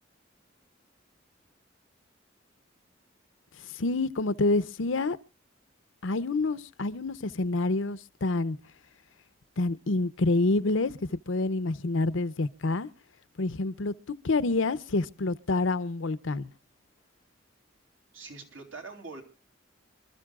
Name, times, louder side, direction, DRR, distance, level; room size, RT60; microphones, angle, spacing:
voice 1, 3.7-5.2 6.0-8.6 9.6-12.9 13.4-13.9 14.2-16.5, left 2 dB, 85° left, 0.7 m, -27 dB
voice 2, 18.1-19.2, right 4 dB, 90° right, 3.2 m, -43 dB
27.5 x 13.5 x 2.4 m
head